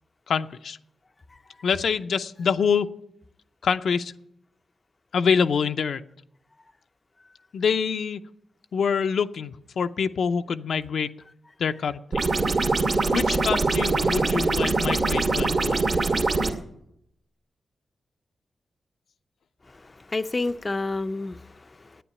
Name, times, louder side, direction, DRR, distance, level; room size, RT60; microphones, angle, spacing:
voice 1, 0.3-0.8 1.6-2.9 3.6-4.1 5.1-6.0 7.5-8.2 8.7-11.2 11.6-12.2 13.1-15.8, left 6 dB, 80° left, 0.5 m, -25 dB
sound 1, 12.1-16.5, right 3 dB, 55° right, 2.1 m, -23 dB
voice 2, 19.7-22.0, left 2 dB, 30° left, 0.5 m, -30 dB
10.0 x 9.5 x 9.7 m
cardioid pair, 85°, 0 cm